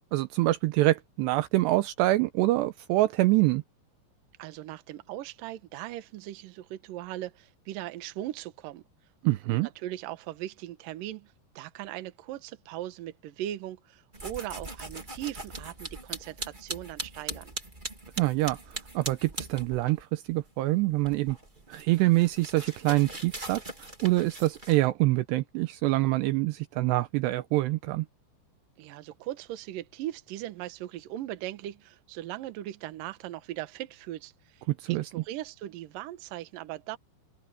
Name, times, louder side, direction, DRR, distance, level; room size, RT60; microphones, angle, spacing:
voice 1, 0.1-3.6 9.2-9.7 18.2-21.4 21.7-28.1 34.7-35.1, right 18 dB, 85° right, 2.6 m, -25 dB
voice 2, 4.4-8.8 9.5-17.5 28.8-37.0, right 14 dB, 70° right, 2.2 m, -39 dB
sound 1, 14.1-20.0 20.3-24.9, right 2 dB, 15° right, 2.2 m, -41 dB
omnidirectional pair, 5.4 m